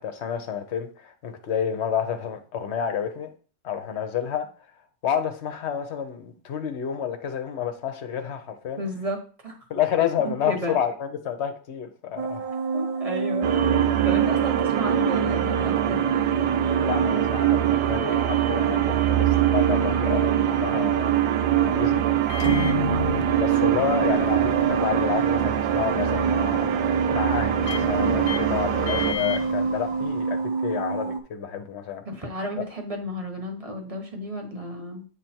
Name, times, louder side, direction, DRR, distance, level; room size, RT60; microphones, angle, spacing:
voice 1, 0.0-3.3 3.6-4.5 5.0-8.8 9.7-12.5 16.8-21.1 21.5-22.1 23.4-26.8 27.1-32.0 32.6-32.7, left 8 dB, 55° left, 0.8 m, -29 dB
voice 2, 8.8-9.2 9.4-9.5 10.2-10.8 12.7-13.5 13.9-16.0 22.4-22.9 32.0-35.0, right 1 dB, 20° right, 1.1 m, -32 dB
sound 1, 12.2-31.2, right 4 dB, 65° right, 0.5 m, -29 dB
sound 2, 13.4-29.1, right 12 dB, 90° right, 1.3 m, -23 dB
Microwave oven, 22.2-30.4, left 7 dB, 85° left, 1.3 m, -34 dB
8.8 x 3.3 x 4.4 m
omnidirectional pair, 2.0 m